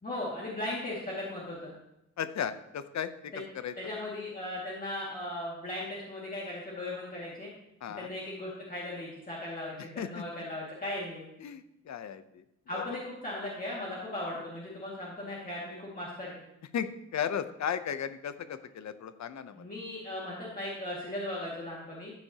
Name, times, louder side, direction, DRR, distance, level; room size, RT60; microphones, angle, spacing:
voice 1, 0.0-1.7 3.3-3.4 3.8-7.5 8.0-11.2 12.7-16.4 19.6-22.1, left 1 dB, 30° left, -6 dB, 2.2 m, -37 dB
voice 2, 2.2-3.7 7.8-8.1 10.0-10.2 11.4-12.4 12.7-13.0 16.7-19.6, left 8 dB, 70° left, 11 dB, 0.7 m, -35 dB
14.5 x 9.5 x 2.9 m, 0.84 s
wide cardioid pair, 170°, 29 cm